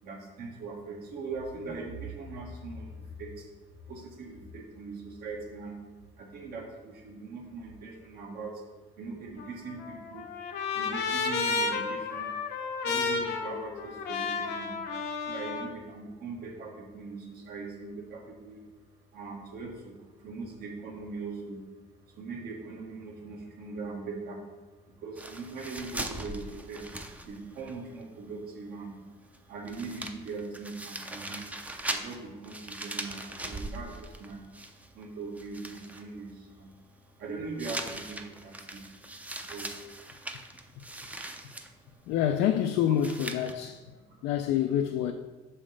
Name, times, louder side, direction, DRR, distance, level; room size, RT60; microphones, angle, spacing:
voice 1, 0.0-5.8 6.1-8.6 9.0-10.3 10.7-14.8 15.3-18.6 19.1-21.7 22.0-24.5 24.9-26.9 27.2-29.0 29.5-31.4 31.9-34.5 34.9-36.7 37.2-38.9 39.4-40.0 41.1-41.2 41.5-42.1 44.1-44.2, right 3 dB, 70° right, 1.5 m, -41 dB
Trumpet, 9.4-15.7, left 4 dB, 75° left, 0.8 m, -32 dB
sound 1, 25.2-27.7 28.0-28.1 29.3-29.4 29.7-35.0 35.4-36.0 37.6-41.7 43.0-43.5, right 1 dB, 10° right, 0.5 m, -40 dB
voice 2, 42.1-43.8 44.2-45.1, left 10 dB, 90° left, 0.4 m, -27 dB
6.2 x 5.6 x 3.3 m
cardioid pair, 110°, 17 cm